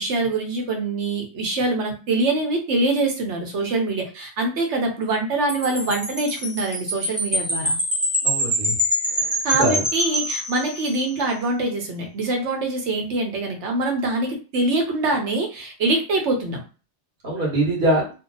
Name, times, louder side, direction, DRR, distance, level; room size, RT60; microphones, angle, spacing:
voice 1, 0.0-7.8 9.4-16.6, right 2 dB, 80° right, 3 dB, 1.1 m, -24 dB
Wind chime, 5.5-11.2, equal, 15° right, 0.7 m, -25 dB
voice 2, 8.2-8.8 9.1-9.8 17.2-18.0, right 1 dB, 50° right, -4 dB, 1.4 m, -23 dB
2.8 x 2.2 x 3.8 m, 0.34 s
omnidirectional pair, 1.2 m